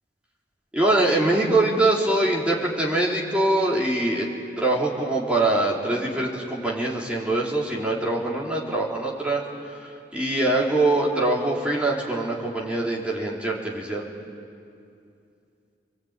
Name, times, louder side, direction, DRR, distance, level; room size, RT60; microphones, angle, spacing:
voice 1, 0.7-4.3 4.6-9.4 10.1-14.1, right 2 dB, 5° right, -4 dB, 3.7 m, -23 dB
29.0 x 22.5 x 9.0 m, 2.5 s
head